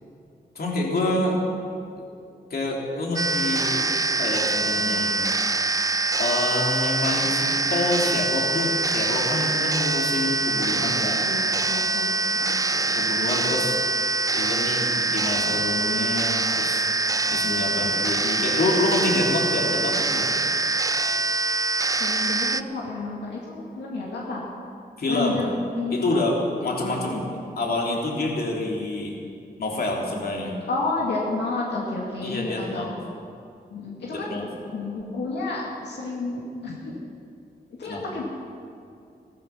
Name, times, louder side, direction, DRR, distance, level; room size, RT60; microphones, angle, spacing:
voice 1, 0.5-1.4 2.5-5.2 6.2-11.2 12.7-13.8 14.3-16.9 17.3-20.3 25.0-25.5 25.9-27.3 27.6-29.2 29.6-30.6 32.2-32.9 34.1-34.5 37.8-38.0, left 2 dB, 65° left, -1 dB, 3.0 m, -27 dB
sound 1, 3.2-22.6, right 3 dB, 20° right, 0.4 m, -24 dB
voice 2, 11.1-12.6 22.0-24.5 25.1-25.5 25.8-26.0 26.7-27.1 30.7-32.9 33.7-34.4 34.7-36.9 37.8-38.2, left 3 dB, 90° left, -4 dB, 2.2 m, -31 dB
15.5 x 13.5 x 5.8 m, 2.4 s
cardioid pair, 75°, 17 cm